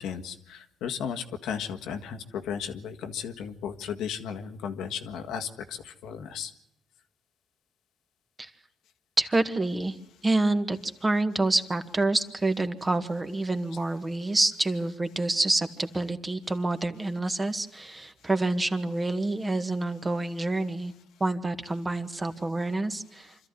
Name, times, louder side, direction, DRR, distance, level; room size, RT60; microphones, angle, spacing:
voice 1, 0.0-6.5, left 7 dB, 85° left, 6 dB, 1.7 m, -35 dB
voice 2, 9.2-10.0 10.2-20.9 21.2-23.5, right 2 dB, 20° right, 8 dB, 1.8 m, -27 dB
25.5 x 13.5 x 9.6 m, 0.82 s
cardioid pair, 90°, 0 cm